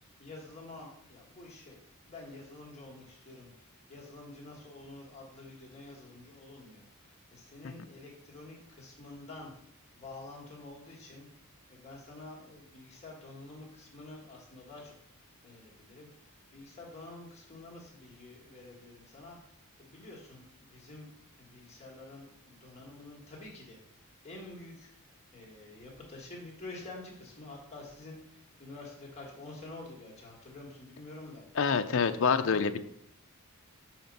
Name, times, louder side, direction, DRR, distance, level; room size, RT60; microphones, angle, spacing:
voice 1, 0.0-1.8 2.0-3.5 3.9-9.5 9.9-11.3 11.7-14.9 15.4-16.1 16.5-19.4 19.8-21.1 21.4-23.8 24.2-24.9 25.3-31.4, left 2 dB, 30° left, -2 dB, 1.6 m, -48 dB
voice 2, 31.6-32.8, left 5 dB, 60° left, 9 dB, 0.5 m, -26 dB
5.8 x 4.3 x 5.2 m, 0.73 s
head